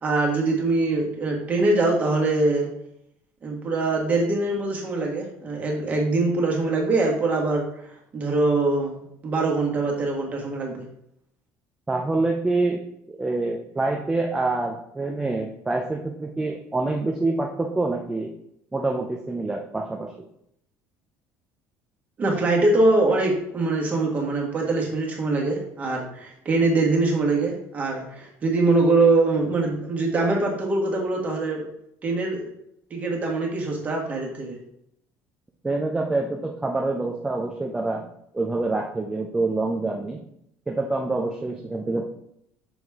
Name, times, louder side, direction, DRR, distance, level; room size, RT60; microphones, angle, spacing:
voice 1, 0.0-2.7 3.4-7.6 8.1-10.8 22.2-31.7 32.0-32.4 32.9-34.6, right 2 dB, 25° right, -1 dB, 1.4 m, -23 dB
voice 2, 11.9-12.8 13.1-18.3 18.7-20.1 35.6-38.1 38.3-40.2 40.7-42.0, right 2 dB, 10° right, 1 dB, 0.4 m, -26 dB
6.2 x 4.9 x 3.5 m, 0.74 s
cardioid pair, 170°, 6 cm